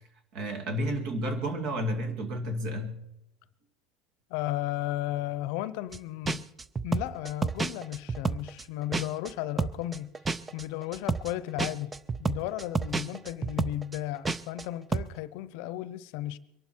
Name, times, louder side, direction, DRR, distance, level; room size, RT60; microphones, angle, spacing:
voice 1, 0.3-3.0, equal, 55° right, 2.4 m, -31 dB
voice 2, 4.3-6.5 6.8-10.1 10.5-11.9 12.2-16.4, left 14 dB, 65° left, 0.7 m, -34 dB
sound 1, 5.9-6.0 6.2-9.3 9.6-14.6 14.9-15.1, right 4 dB, 15° right, 0.5 m, -30 dB
23.0 x 11.5 x 4.5 m
supercardioid pair, 140°, 0 cm